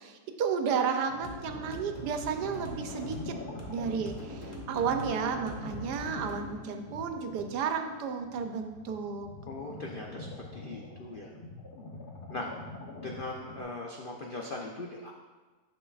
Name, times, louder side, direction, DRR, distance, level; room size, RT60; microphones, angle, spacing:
voice 1, 0.0-3.3 3.7-9.3, right 6 dB, 80° right, 6 dB, 1.2 m, -32 dB
sound 1, 1.1-13.6, left 2 dB, 45° left, 0.8 m, -45 dB
sound 2, 1.2-8.2, left 1 dB, 30° left, 1.2 m, -43 dB
voice 2, 9.5-11.3 12.3-12.5 13.0-15.1, left 2 dB, 70° left, -1 dB, 0.5 m, -40 dB
10.0 x 6.2 x 2.4 m, 1.3 s
omnidirectional pair, 1.8 m